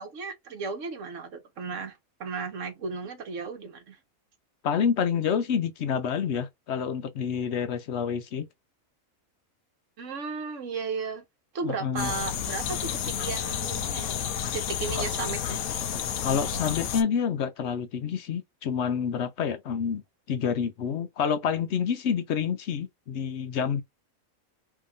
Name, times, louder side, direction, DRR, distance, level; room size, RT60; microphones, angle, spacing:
voice 1, 0.0-4.0 10.0-11.2 11.5-14.1 14.5-15.6, right 5 dB, 65° right, 1.3 m, -35 dB
voice 2, 4.6-8.5 11.6-12.1 15.0-15.1 16.2-20.0 20.3-23.8, left 7 dB, 60° left, 0.8 m, -28 dB
sound 1, 12.0-17.0, left 8 dB, 80° left, 1.1 m, -31 dB
3.5 x 2.6 x 3.3 m
omnidirectional pair, 1.5 m